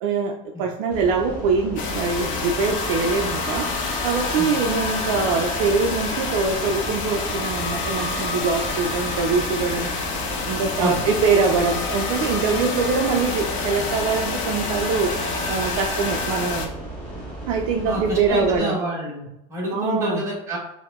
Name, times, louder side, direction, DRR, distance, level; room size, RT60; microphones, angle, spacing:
voice 1, 0.0-3.7 4.0-10.0 10.5-16.7 17.5-18.8 19.7-20.2, right 4 dB, 60° right, 2 dB, 0.4 m, -23 dB
sound 1, 0.9-18.6, right 2 dB, 5° left, 1.1 m, -35 dB
sound 2, 1.8-16.7, left 4 dB, 50° left, 0.6 m, -28 dB
voice 2, 17.8-20.6, equal, 15° right, -4 dB, 1.1 m, -28 dB
4.6 x 2.1 x 2.3 m, 0.88 s
supercardioid pair, 140°, 18 cm